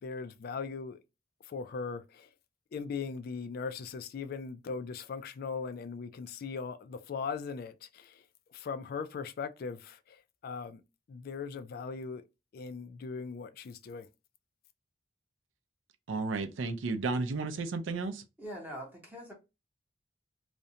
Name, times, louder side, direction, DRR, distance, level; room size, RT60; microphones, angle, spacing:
voice 1, 0.0-1.0 1.5-2.3 2.7-8.2 8.5-10.8 11.1-12.2 12.5-14.1, left 5 dB, 50° left, 0.3 m, -39 dB
voice 2, 16.1-18.2, right 3 dB, 85° right, 0.5 m, -33 dB
voice 3, 18.4-19.3, equal, 10° right, 0.6 m, -43 dB
2.5 x 2.1 x 2.7 m
head